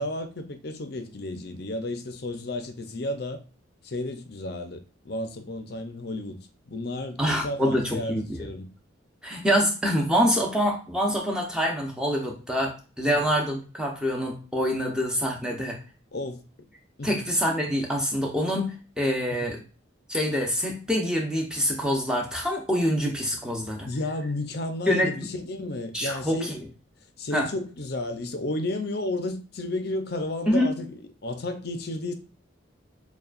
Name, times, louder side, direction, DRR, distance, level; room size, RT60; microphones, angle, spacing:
voice 1, 0.0-3.4 3.8-6.4 6.7-8.7 13.0-13.1 16.1-16.4 17.0-17.2 19.3-19.6 23.8-26.5 27.2-32.1, left 2 dB, 50° left, 0.6 m, -32 dB
voice 2, 7.2-8.4 9.2-15.8 17.0-19.6 20.1-23.9 24.9-25.3 25.9-26.6 27.3-27.5 30.5-30.7, equal, 5° right, 0.7 m, -25 dB
6.8 x 2.3 x 2.4 m
head